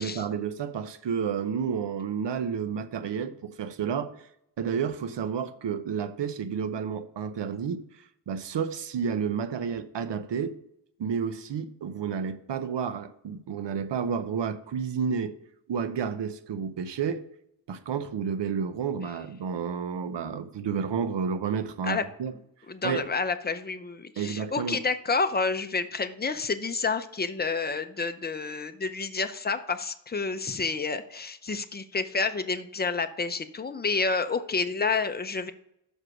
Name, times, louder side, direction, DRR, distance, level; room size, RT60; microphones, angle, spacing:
voice 1, 0.0-4.1 4.6-7.8 8.3-10.5 11.0-15.3 15.7-17.2 17.7-22.3 22.8-23.0 24.2-24.8, right 6 dB, 70° right, 0.8 m, -30 dB
voice 2, 22.7-35.5, left 4 dB, 20° left, 0.6 m, -29 dB
6.5 x 4.9 x 6.1 m
wide cardioid pair, 75°, 44 cm